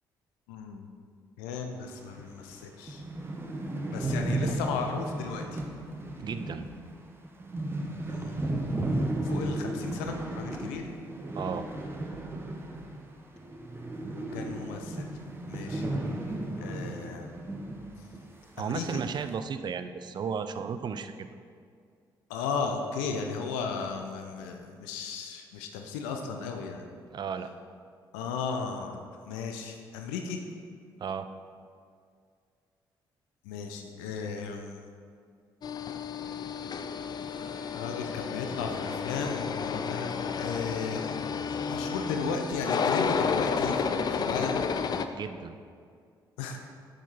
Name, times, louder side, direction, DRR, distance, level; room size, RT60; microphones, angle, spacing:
voice 1, 0.5-0.9 1.4-3.0 3.9-5.6 8.1-8.4 9.2-10.9 14.2-15.1 15.5-15.9 16.6-17.3 18.6-19.0 22.3-26.9 28.1-29.0 29.2-30.4 33.4-34.8 37.2-41.2 41.7-44.6 46.4-46.6, left 5 dB, 70° left, 4 dB, 0.7 m, -35 dB
sound 1, 2.2-2.3 2.6-2.7 2.9-13.1 13.4-17.9 18.1-18.2 18.9-19.3, right 2 dB, 20° right, 1.3 m, -34 dB
voice 2, 6.2-6.7 11.3-11.7 18.6-21.3 27.1-27.5 31.0-31.3 45.1-45.6, right 6 dB, 40° right, 10 dB, 0.6 m, -34 dB
sound 2, 35.6-45.1, left 5 dB, 35° left, 0.5 m, -31 dB
9.1 x 7.3 x 4.4 m, 2.2 s
figure-of-eight pair, 45°, 11 cm